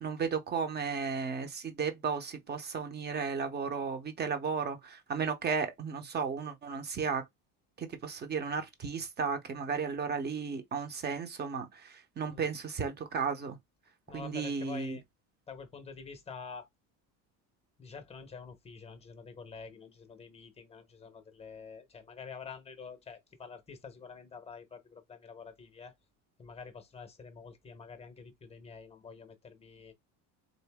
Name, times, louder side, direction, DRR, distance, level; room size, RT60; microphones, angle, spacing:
voice 1, 0.0-7.2 7.8-13.6 14.1-15.0, right 5 dB, 25° right, 0.8 m, -34 dB
voice 2, 14.1-15.0 15.5-16.7 17.8-25.9 26.4-29.9, left 5 dB, 15° left, 0.8 m, -47 dB
4.0 x 2.6 x 3.5 m
cardioid pair, 145°, 40 cm